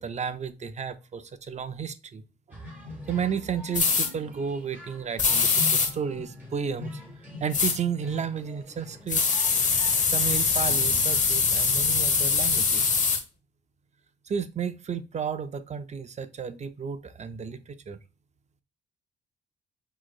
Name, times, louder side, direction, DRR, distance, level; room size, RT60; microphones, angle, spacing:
voice 1, 0.0-2.2 2.5-2.6 3.1-7.0 7.4-9.3 10.1-12.9 14.3-18.0, right 7 dB, 35° right, 0.6 m, -33 dB
sound 1, 2.5-11.1, left 2 dB, 10° right, 2.0 m, -43 dB
sound 2, 3.7-4.1 5.2-5.9 7.5-7.8 9.1-13.2, left 5 dB, 40° left, 1.0 m, -23 dB
6.2 x 3.1 x 2.3 m
cardioid pair, 90°, 20 cm